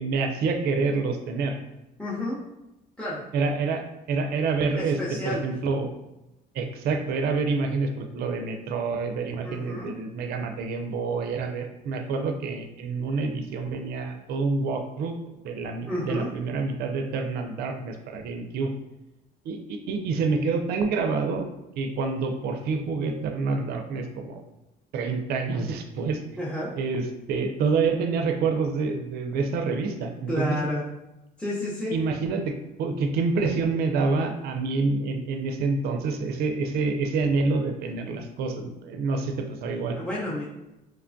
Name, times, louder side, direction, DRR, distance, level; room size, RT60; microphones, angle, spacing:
voice 1, 0.0-1.6 3.3-3.8 4.1-5.0 5.2-5.9 6.5-15.1 15.4-18.7 19.5-21.5 21.8-24.4 24.9-26.2 26.8-30.6 31.9-40.0, right 4 dB, 65° right, 5 dB, 0.4 m, -27 dB
voice 2, 2.0-2.5 3.0-3.3 4.7-5.5 9.4-10.0 15.9-16.3 26.4-26.7 30.3-30.8 31.4-32.0 39.9-40.4, left 1 dB, 5° left, -9 dB, 0.6 m, -30 dB
3.0 x 2.2 x 2.5 m, 0.93 s
cardioid pair, 115°, 17 cm